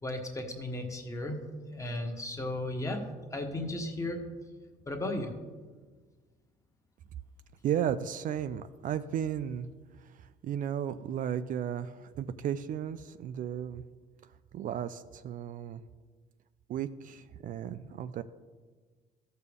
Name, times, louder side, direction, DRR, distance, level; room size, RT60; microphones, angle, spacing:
voice 1, 0.0-1.4 1.7-3.0 3.3-4.3 4.8-5.3, left 1 dB, 20° left, 3 dB, 1.3 m, -35 dB
voice 2, 7.6-9.7 10.4-13.8 14.5-15.8 16.7-18.2, right 9 dB, 55° right, 12 dB, 0.4 m, -34 dB
13.5 x 6.7 x 3.4 m, 1.4 s
cardioid pair, 110°, 17 cm